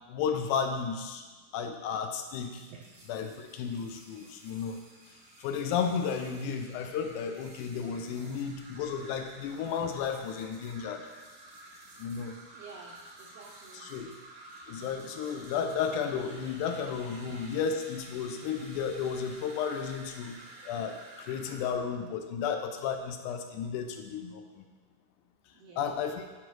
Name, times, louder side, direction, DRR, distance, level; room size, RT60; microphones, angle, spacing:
voice 1, 0.1-1.2 1.5-2.6 3.1-4.8 5.4-11.1 12.0-12.4 13.7-14.1 14.7-20.4 20.7-24.6 25.8-26.2, left 6 dB, 80° left, 5 dB, 2.1 m, -33 dB
sound 1, 2.2-21.7, right 2 dB, 65° right, 1.0 m, -51 dB
voice 2, 8.1-8.4 10.1-10.2 12.5-13.9 25.5-26.3, right 5 dB, 80° right, -2 dB, 1.5 m, -51 dB
9.9 x 5.0 x 3.1 m, 1.3 s
omnidirectional pair, 3.6 m